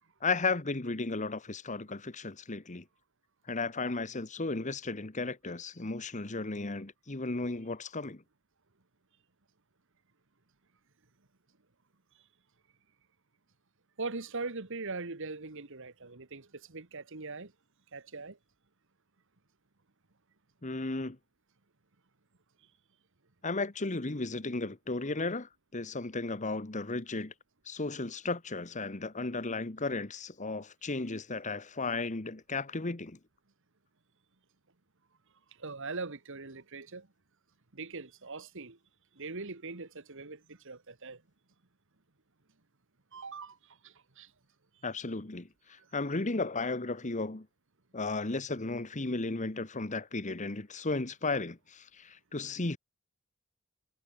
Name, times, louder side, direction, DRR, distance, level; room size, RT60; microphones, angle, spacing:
voice 1, 0.2-2.8 3.5-8.2 20.6-21.2 23.4-27.3 27.7-33.2 44.8-45.5 45.9-47.5 47.9-52.8, left 3 dB, 35° left, 1.3 m, -34 dB
voice 2, 14.0-17.5 17.9-18.4 35.6-37.1 37.7-38.8 39.2-41.2 43.1-43.6 43.8-44.3, right 3 dB, 60° right, 1.8 m, -41 dB
head